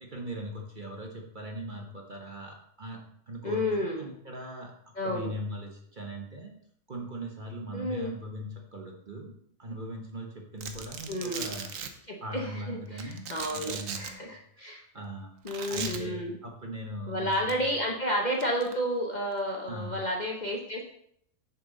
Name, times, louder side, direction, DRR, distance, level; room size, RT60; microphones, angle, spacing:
voice 1, 0.0-3.0 3.3-4.7 5.0-6.5 6.9-9.3 9.6-11.8 12.2-15.3 15.7-17.5 19.7-20.1, equal, 35° right, 1 dB, 1.0 m, -40 dB
voice 2, 3.4-4.1 5.0-5.3 7.7-8.1 11.1-11.5 12.1-14.8 15.4-16.4 17.1-20.9, equal, 35° left, -1 dB, 0.9 m, -31 dB
Domestic sounds home sounds, 10.6-11.9 13.0-14.1 15.5-16.0 17.3-17.5 18.4-18.7, right 7 dB, 65° right, 1.1 m, -37 dB
7.2 x 6.9 x 3.9 m, 0.68 s
omnidirectional pair, 1.6 m